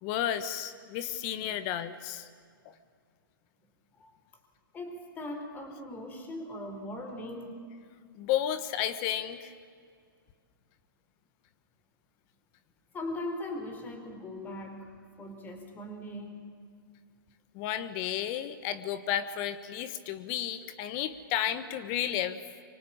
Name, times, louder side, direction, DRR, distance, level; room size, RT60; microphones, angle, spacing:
voice 1, 0.0-2.2 8.2-9.5 17.5-22.4, left 11 dB, 35° left, 12 dB, 1.4 m, -32 dB
voice 2, 4.7-7.6 12.9-14.9 15.2-16.5, left 1 dB, 15° left, 6 dB, 4.3 m, -39 dB
25.5 x 24.5 x 8.9 m, 2.1 s
hypercardioid pair, 135°, 12 cm